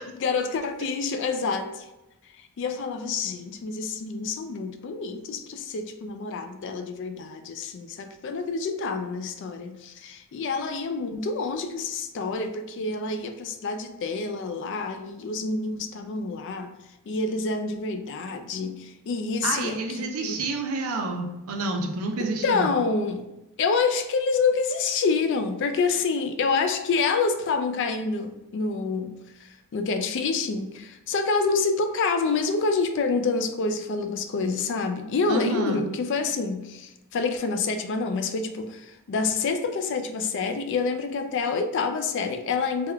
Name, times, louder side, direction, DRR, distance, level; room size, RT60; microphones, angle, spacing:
voice 1, 0.1-1.8 2.4-16.7 17.1-20.3 22.2-23.2 23.6-29.2 29.4-42.9, left 4 dB, 55° left, 8 dB, 0.3 m, -27 dB
voice 2, 19.4-22.7 35.3-35.8, right 3 dB, 75° right, 2 dB, 0.5 m, -29 dB
3.4 x 2.2 x 3.3 m, 0.95 s
head